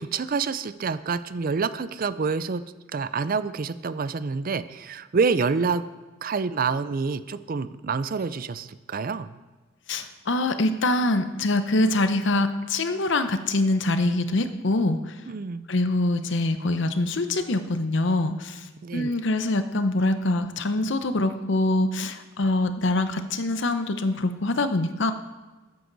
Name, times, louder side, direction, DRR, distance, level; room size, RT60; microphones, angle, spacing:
voice 1, 0.0-2.6 2.9-5.8 6.2-9.4 15.3-15.7 18.8-19.2, right 5 dB, 45° right, 14 dB, 0.4 m, -27 dB
voice 2, 9.9-15.1 15.7-25.1, left 2 dB, 65° left, 9 dB, 0.8 m, -24 dB
14.0 x 9.5 x 4.0 m, 1.2 s
head